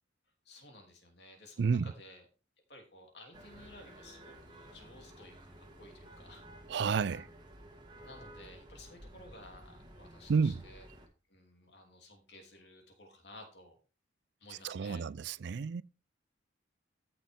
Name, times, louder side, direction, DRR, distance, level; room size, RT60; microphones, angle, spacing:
voice 1, 0.4-2.3 2.7-6.4 6.8-7.2 8.0-10.9 11.3-13.8 14.4-15.0, left 1 dB, 60° left, 3.0 m, -55 dB
sound 1, 3.3-11.1, right 1 dB, 25° right, 1.9 m, -53 dB
voice 2, 6.7-7.3 10.3-10.6 14.6-15.8, right 5 dB, 65° right, 0.4 m, -30 dB
13.5 x 6.3 x 3.6 m
head